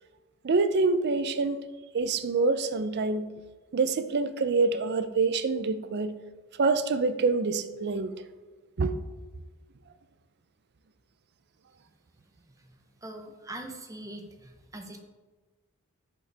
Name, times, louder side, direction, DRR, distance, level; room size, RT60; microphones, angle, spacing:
voice 1, 0.4-1.6 1.9-3.3 3.7-6.1 6.6-8.1 8.8-9.0, right 3 dB, 50° right, 12 dB, 0.4 m, -26 dB
voice 2, 13.0-15.0, right 1 dB, 15° right, 5 dB, 0.7 m, -42 dB
10.5 x 5.2 x 3.4 m, 1.3 s
head